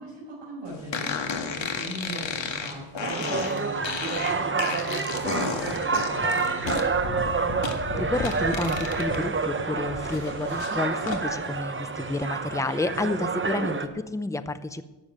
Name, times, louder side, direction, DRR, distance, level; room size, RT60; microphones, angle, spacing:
voice 1, 0.0-6.6, right 1 dB, 65° right, -7 dB, 6.0 m, -40 dB
sound 1, 0.9-9.2 9.6-11.2, left 5 dB, 65° left, 1.9 m, -33 dB
sound 2, 2.1-2.8 3.4-4.5 5.8-6.9 8.1-9.3, left 8 dB, 85° left, 4.6 m, -51 dB
sound 3, 3.0-13.9, right 4 dB, 25° right, 1.0 m, -28 dB
voice 2, 8.0-14.8, left 2 dB, 5° left, 12 dB, 0.6 m, -30 dB
14.0 x 7.1 x 9.2 m, 1.1 s
wide cardioid pair, 125°, 48 cm